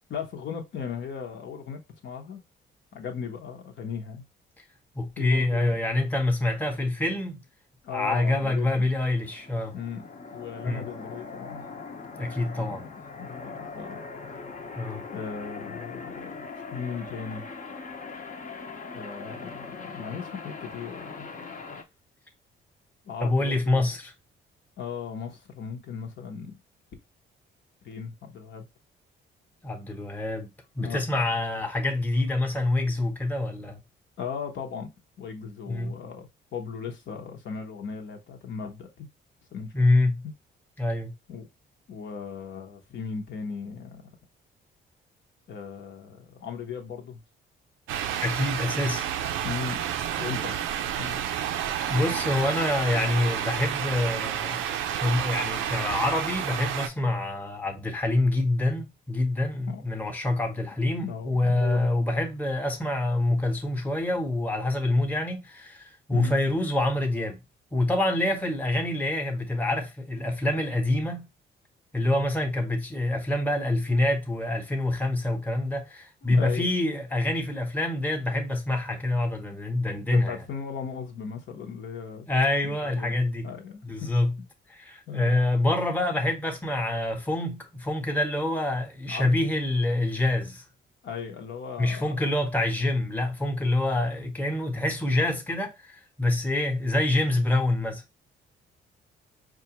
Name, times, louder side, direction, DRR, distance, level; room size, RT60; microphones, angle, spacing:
voice 1, 0.1-2.4 2.9-4.2 5.2-5.8 7.8-8.9 9.7-10.1 10.3-11.6 12.5-12.9 13.2-14.0 15.1-17.4 18.9-21.3 23.0-23.9 24.8-26.6 27.8-28.7 30.8-31.0 34.2-34.9 35.2-39.1 39.5-39.8 40.2-40.3 41.3-41.5 41.9-44.1 45.5-47.2 49.4-49.8 50.2-50.6 51.0-51.2 59.7-59.8 61.0-61.9 66.1-66.4 76.2-76.7 80.1-82.3 82.6-83.1 83.4-84.1 84.4-84.5 85.1-85.4 89.1-89.3 91.0-92.2, left 6 dB, 65° left, 0.9 m, -37 dB
voice 2, 4.9-7.4 7.9-9.7 10.6-10.9 12.1-12.8 14.8-15.0 23.2-24.1 29.6-30.5 30.8-33.8 35.7-35.9 39.7-40.2 40.8-41.1 48.2-49.1 51.9-54.6 54.9-67.4 67.7-71.2 71.9-80.4 82.3-83.5 83.8-84.4 84.7-90.6 91.8-98.0, left 2 dB, 10° left, 0.9 m, -26 dB
sound 1, 9.1-21.8, left 4 dB, 40° left, 0.8 m, -41 dB
sound 2, 47.9-56.9, right 10 dB, 90° right, 0.5 m, -30 dB
4.6 x 2.4 x 2.9 m
cardioid pair, 90°, 20 cm